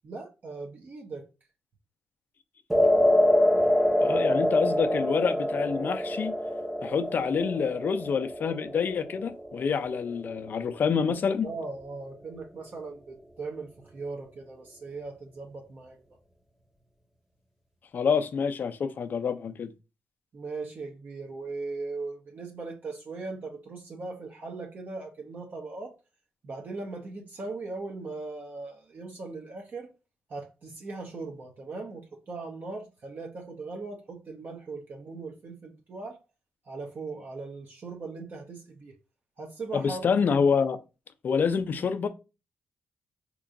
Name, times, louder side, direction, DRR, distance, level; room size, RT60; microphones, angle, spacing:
voice 1, 0.0-1.3 11.4-16.0 20.3-25.9 26.4-29.9 30.3-36.2 36.7-38.9 39.4-40.3, right 3 dB, 55° right, 0.8 m, -39 dB
sound 1, 2.7-11.0, left 1 dB, 10° right, 0.7 m, -26 dB
voice 2, 4.0-6.3 6.8-11.5 17.9-19.7 39.7-40.8 41.2-42.1, left 6 dB, 60° left, 0.4 m, -27 dB
3.7 x 2.9 x 2.5 m
cardioid pair, 75°, 4 cm